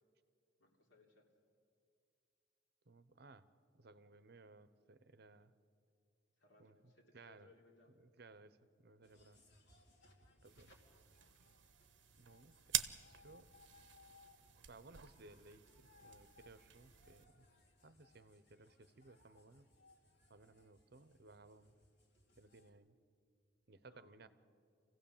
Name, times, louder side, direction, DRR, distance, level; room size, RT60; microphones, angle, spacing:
voice 1, 0.6-1.3 6.4-8.0 23.8-24.3, left 2 dB, 85° left, 0 dB, 3.5 m, -68 dB
voice 2, 2.9-3.5 3.7-5.5 6.6-7.5 8.0-9.4 10.4-10.8 12.2-12.8 13.1-13.5 14.7-17.5 17.8-19.7 20.3-21.8 22.4-23.0 23.7-24.3, right 3 dB, 60° right, 13 dB, 0.8 m, -61 dB
sound 1, 9.0-22.7, left 2 dB, 65° left, 2.8 m, -68 dB
sound 2, 10.4-17.2, right 12 dB, 80° right, 0.8 m, -47 dB
26.0 x 16.0 x 7.3 m, 2.3 s
head